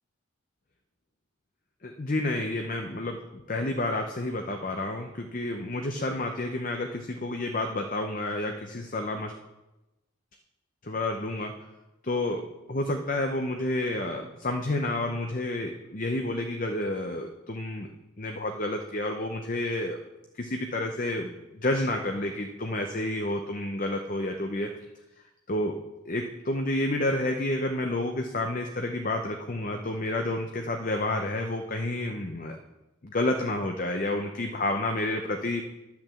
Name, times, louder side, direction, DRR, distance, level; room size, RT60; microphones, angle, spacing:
voice 1, 1.8-9.3 10.8-11.5 12.0-12.4 12.7-17.9 18.2-20.0 20.4-24.7 25.5-25.7 26.1-32.6 33.0-35.6, left 1 dB, 40° left, 4 dB, 0.7 m, -30 dB
10.5 x 5.9 x 7.6 m, 1.0 s
head